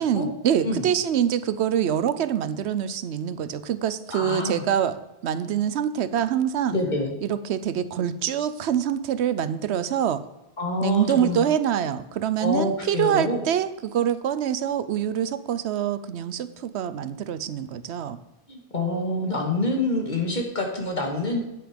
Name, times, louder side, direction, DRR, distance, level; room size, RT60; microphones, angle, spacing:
voice 1, 0.0-5.0 5.2-6.7 7.2-10.2 10.8-18.2, right 9 dB, 85° right, 13 dB, 0.9 m, -25 dB
voice 2, 4.1-4.6 6.7-7.1 10.6-11.4 12.4-13.4 18.5-21.4, left 2 dB, 45° left, 1 dB, 2.0 m, -26 dB
9.6 x 7.8 x 5.1 m, 0.95 s
omnidirectional pair, 1.1 m